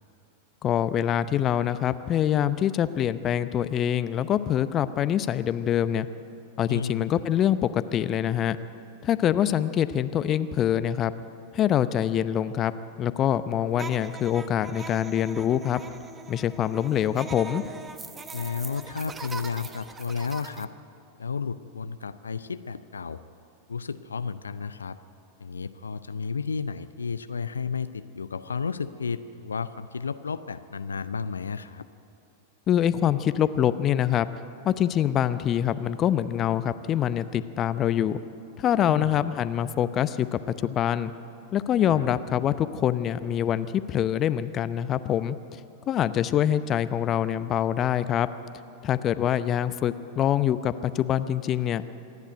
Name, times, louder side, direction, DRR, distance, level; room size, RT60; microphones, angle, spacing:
voice 1, 0.6-6.1 6.6-8.6 9.0-11.1 11.5-12.7 13.0-15.8 16.3-17.6 32.7-34.3 34.6-38.2 38.6-41.1 41.5-45.4 45.9-48.3 48.8-51.8, left 10 dB, 30° left, 14 dB, 0.7 m, -25 dB
voice 2, 6.7-7.1 18.3-20.7 21.2-23.2 23.7-25.0 25.4-31.9 38.9-39.2 41.9-42.1, left 5 dB, 75° left, 13 dB, 0.5 m, -32 dB
sound 1, 13.7-20.6, right 4 dB, 15° right, 1.0 m, -41 dB
26.5 x 11.0 x 9.1 m, 2.7 s
figure-of-eight pair, 90°, 0 cm